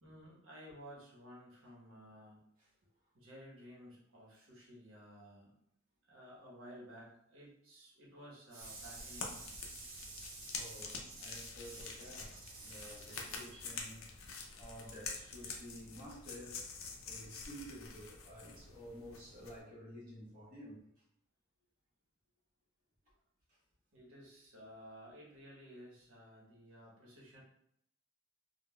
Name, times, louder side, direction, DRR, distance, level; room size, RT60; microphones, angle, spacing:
voice 1, 0.0-2.4 3.1-5.5 6.0-13.5 23.9-27.4, right 1 dB, 65° right, -4 dB, 1.0 m, -53 dB
sound 1, 8.6-19.6, left 4 dB, 75° left, 0.5 m, -47 dB
voice 2, 10.5-16.6 17.1-20.8 23.5-23.6, equal, 40° right, -8 dB, 1.0 m, -52 dB
3.8 x 2.1 x 2.2 m, 0.76 s
head